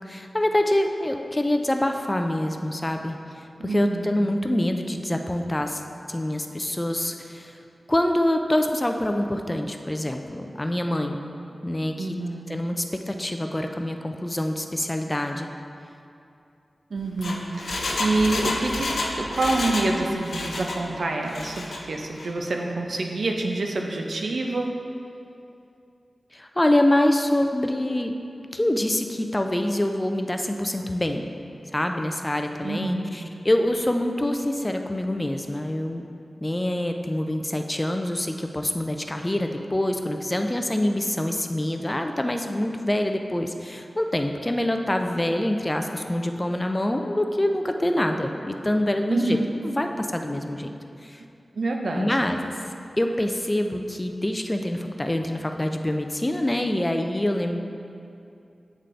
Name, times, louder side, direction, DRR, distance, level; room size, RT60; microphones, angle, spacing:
voice 1, 0.1-3.2 3.6-5.8 6.1-7.5 7.9-11.2 11.6-12.1 12.5-15.5 26.3-28.1 28.5-31.2 31.7-36.1 36.4-49.4 49.6-50.7 51.0-51.2 51.9-52.4 53.0-57.6, left 1 dB, 20° left, 5 dB, 0.3 m, -25 dB
voice 2, 3.6-4.2 12.0-12.5 16.9-18.9 19.1-24.7 32.6-33.1 49.1-49.5 51.5-52.2, right 2 dB, 80° right, 1 dB, 0.5 m, -27 dB
Engine, 17.0-19.9 20.2-20.8 21.2-21.8 22.2-22.3, left 2 dB, 90° left, 0.5 m, -29 dB
8.1 x 3.8 x 3.3 m, 2.6 s
wide cardioid pair, 85°, 0 cm